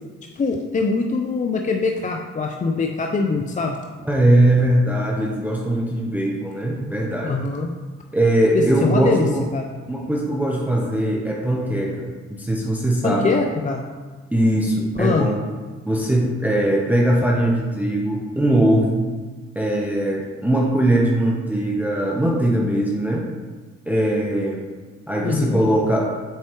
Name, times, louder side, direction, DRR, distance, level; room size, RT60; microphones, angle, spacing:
voice 1, 0.4-3.8 7.2-7.7 8.5-9.7 13.0-13.8 15.0-15.3 25.2-25.6, left 4 dB, 25° left, 2 dB, 0.5 m, -23 dB
voice 2, 4.0-7.4 8.1-9.5 9.9-13.4 14.3-15.3 15.8-19.1 19.6-23.3 23.9-24.6 25.1-26.1, right 1 dB, 5° right, -2 dB, 0.7 m, -20 dB
7.9 x 4.4 x 3.0 m, 1.4 s
cardioid pair, 90°, 30 cm